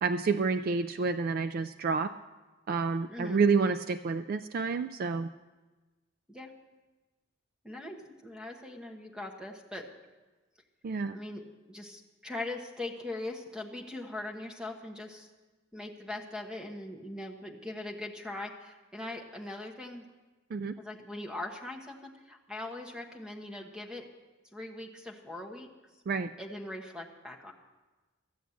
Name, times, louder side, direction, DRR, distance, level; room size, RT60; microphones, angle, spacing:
voice 1, 0.0-2.1 2.7-5.3 10.8-11.2 20.5-20.8 26.1-26.3, right 4 dB, 45° right, 11 dB, 0.3 m, -29 dB
voice 2, 3.1-3.5 6.3-6.5 7.6-9.9 11.1-11.4 11.7-15.3 15.7-20.0 20.8-24.1 24.5-25.7 26.4-27.5, left 2 dB, 5° right, 1 dB, 1.1 m, -41 dB
13.5 x 7.2 x 8.4 m, 1.2 s
head